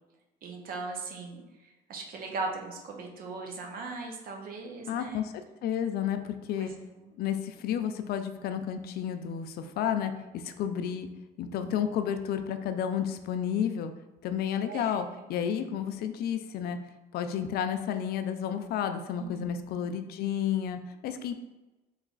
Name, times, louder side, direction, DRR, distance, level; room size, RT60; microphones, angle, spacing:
voice 1, 0.4-5.2 6.6-7.1 14.6-15.2 19.2-19.8, right 3 dB, 60° right, 2 dB, 0.8 m, -39 dB
voice 2, 4.9-5.3 5.6-6.7 7.2-11.1 11.4-13.9 14.2-16.8 17.1-21.3, left 9 dB, 70° left, 8 dB, 0.4 m, -31 dB
3.1 x 3.1 x 3.8 m, 1.1 s
cardioid pair, 110°, 17 cm